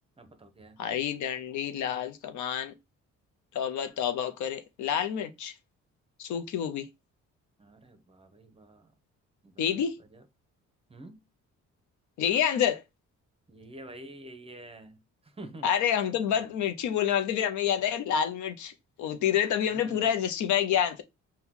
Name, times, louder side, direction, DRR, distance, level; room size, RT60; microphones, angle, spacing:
voice 1, 0.2-0.8 7.6-8.9 9.4-10.2 10.9-11.2 13.5-15.7 16.3-16.5 19.6-20.1, right 1 dB, 20° right, 0.7 m, -48 dB
voice 2, 0.8-2.7 3.5-5.5 6.2-6.9 9.6-9.9 12.2-12.8 15.6-18.7 19.0-21.0, left 9 dB, 75° left, 0.6 m, -28 dB
4.4 x 2.2 x 3.6 m
cardioid pair, 90°, 30 cm